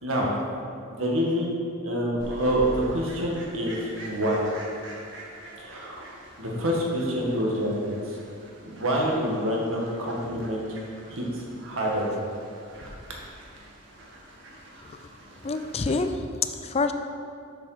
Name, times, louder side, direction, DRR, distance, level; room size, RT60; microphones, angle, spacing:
voice 1, 0.0-0.3 0.9-1.6 1.8-4.5 5.6-6.0 6.4-8.2 8.6-10.6 11.1-12.1, equal, 75° right, -3 dB, 1.7 m, -27 dB
Fowl, 2.2-16.0, right 1 dB, 60° right, 1.5 m, -45 dB
voice 2, 15.4-16.9, left 4 dB, 30° left, 8 dB, 0.4 m, -27 dB
7.1 x 6.8 x 5.0 m, 2.3 s
head